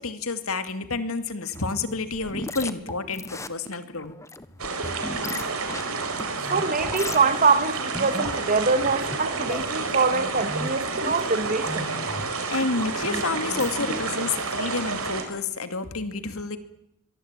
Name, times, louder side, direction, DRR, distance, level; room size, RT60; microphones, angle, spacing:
voice 1, 0.0-4.1 12.5-16.6, left 3 dB, 65° left, 2.6 m, -29 dB
sound 1, 1.5-14.0, left 1 dB, 15° left, 1.4 m, -37 dB
sound 2, 4.6-15.2, right 4 dB, 70° right, 4.8 m, -30 dB
voice 2, 6.5-11.9, right 4 dB, 40° right, 2.1 m, -24 dB
24.5 x 23.0 x 9.1 m
head